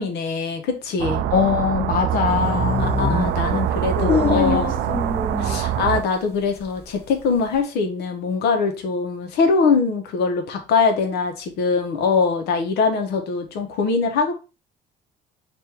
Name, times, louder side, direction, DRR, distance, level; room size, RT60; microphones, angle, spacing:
voice 1, 0.0-1.2 2.8-4.7 5.4-14.3, left 4 dB, 80° left, 1.0 m, -22 dB
sound 1, 1.0-6.0, right 11 dB, 75° right, 0.4 m, -24 dB
voice 2, 1.3-3.0 3.7-5.0, left 7 dB, 55° left, 0.6 m, -23 dB
sound 2, 2.3-6.1 6.4-7.6, left 5 dB, 15° left, 0.6 m, -25 dB
3.4 x 2.6 x 4.5 m
cardioid pair, 110°, 17 cm